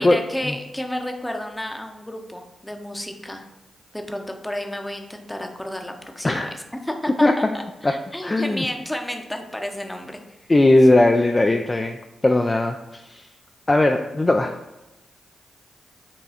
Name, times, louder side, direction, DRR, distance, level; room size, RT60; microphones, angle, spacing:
voice 1, 0.0-3.5 3.9-10.5, left 1 dB, 10° left, 4 dB, 0.7 m, -31 dB
voice 2, 8.2-8.7 10.5-12.0 12.2-13.2 13.7-14.5, left 2 dB, 30° left, 5 dB, 0.3 m, -18 dB
5.5 x 2.3 x 4.2 m, 1.0 s
supercardioid pair, 40°, 0 cm